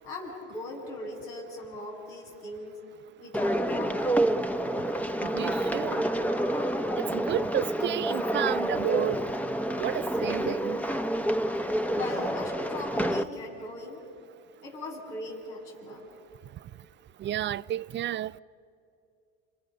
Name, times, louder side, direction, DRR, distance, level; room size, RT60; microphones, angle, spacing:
voice 1, 0.0-2.8 3.2-4.1 11.9-14.0 14.6-16.0, left 2 dB, 85° left, 7.9 m, -39 dB
sound 1, 3.3-13.2, right 1 dB, 5° left, 1.0 m, -28 dB
voice 2, 5.3-6.0 6.9-9.2 9.8-10.8 17.2-18.3, right 12 dB, 35° right, 0.5 m, -31 dB
30.0 x 26.0 x 6.6 m
supercardioid pair, 85°, 31 cm